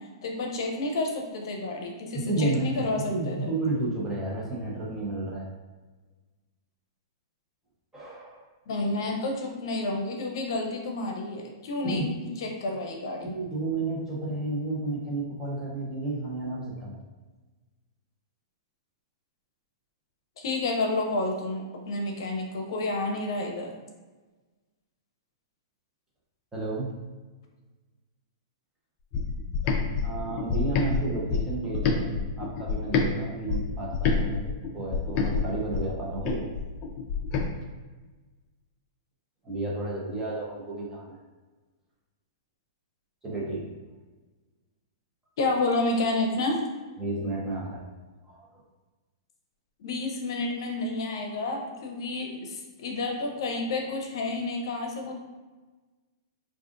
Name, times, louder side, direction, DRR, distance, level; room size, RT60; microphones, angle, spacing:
voice 1, 0.2-3.5 8.7-13.3 20.4-23.7 45.4-46.6 49.8-55.1, left 2 dB, 65° left, 2 dB, 0.7 m, -30 dB
voice 2, 2.2-2.7 2.9-5.5 7.9-8.4 11.8-12.0 13.2-17.0 26.5-26.9 30.0-34.4 34.7-36.4 39.4-41.2 43.2-43.6 47.0-47.8 48.3-48.4, right 2 dB, 15° right, -5 dB, 0.9 m, -31 dB
sound 1, 29.1-33.1 33.5-37.5, left 5 dB, 35° left, 0.4 m, -28 dB
4.7 x 2.5 x 2.5 m, 1.3 s
hypercardioid pair, 140°, 3 cm